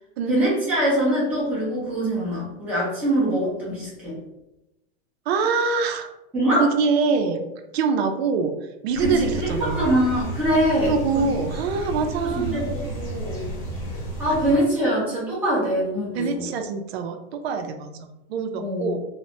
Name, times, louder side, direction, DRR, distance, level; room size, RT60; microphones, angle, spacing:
voice 1, 0.3-4.2 6.3-6.6 9.0-11.3 12.2-13.4 14.2-16.5 18.5-18.9, right 1 dB, 5° right, -10 dB, 0.7 m, -23 dB
voice 2, 5.3-6.1 6.6-7.5 7.7-8.5 8.8-9.9 10.6-12.7 16.1-19.0, right 5 dB, 85° right, 6 dB, 0.5 m, -24 dB
sound 1, 8.9-14.6, right 1 dB, 40° left, 0.8 m, -32 dB
3.1 x 2.0 x 2.6 m, 0.94 s
supercardioid pair, 175°, 30 cm